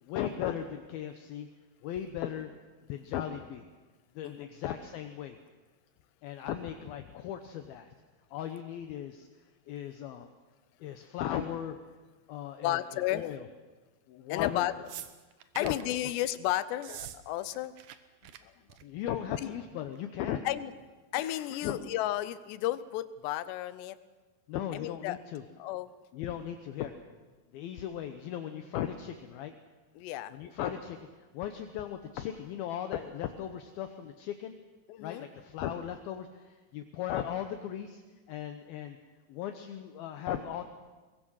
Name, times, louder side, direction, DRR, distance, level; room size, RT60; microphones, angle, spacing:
voice 1, 0.0-1.5 1.8-2.5 2.9-3.7 4.2-5.4 6.2-7.9 8.3-9.3 9.7-10.3 10.8-11.8 12.3-12.8 13.1-13.5 14.1-14.8 15.6-15.8 18.2-18.3 18.8-20.4 21.6-21.8 24.5-25.4 26.1-26.9 27.5-29.5 30.3-34.6 35.0-38.0 38.3-39.0 39.3-40.6, left 10 dB, 75° left, 7 dB, 2.6 m, -37 dB
voice 2, 12.6-13.2 14.3-14.7 15.6-17.7 19.4-19.5 20.5-20.7 21.1-24.0 24.7-25.2 25.6-25.9 30.0-30.3 34.9-35.3, left 14 dB, 90° left, 14 dB, 3.0 m, -33 dB
sound 1, 14.9-15.9 16.7-17.2 17.4-18.0 18.2-18.4 18.7-19.0 20.0-20.1, right 11 dB, 80° right, 1.7 m, -45 dB
22.5 x 21.5 x 6.4 m, 1.3 s
omnidirectional pair, 4.8 m